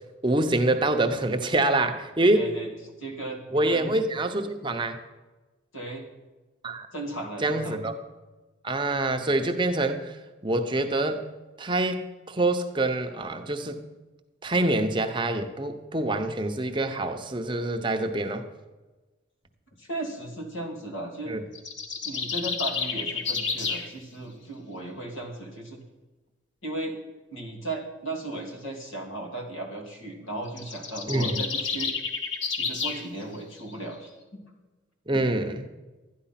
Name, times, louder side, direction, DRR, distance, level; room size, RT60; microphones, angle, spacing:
voice 1, 0.2-2.5 3.5-5.0 6.6-6.9 7.4-7.9 8.6-10.2 10.4-11.2 11.6-13.8 14.4-18.4 21.3-21.4 31.1-31.4 35.1-35.7, right 2 dB, 25° right, 6 dB, 0.7 m, -26 dB
voice 2, 2.3-2.7 3.0-3.9 5.7-6.1 6.9-7.8 19.8-21.4 22.0-25.8 26.6-27.0 27.3-31.9 32.6-34.4, right 2 dB, 85° left, 2 dB, 2.5 m, -36 dB
sound 1, 21.5-23.9 30.5-33.0, left 5 dB, 70° left, 1.4 m, -30 dB
12.5 x 10.0 x 5.8 m, 1.2 s
head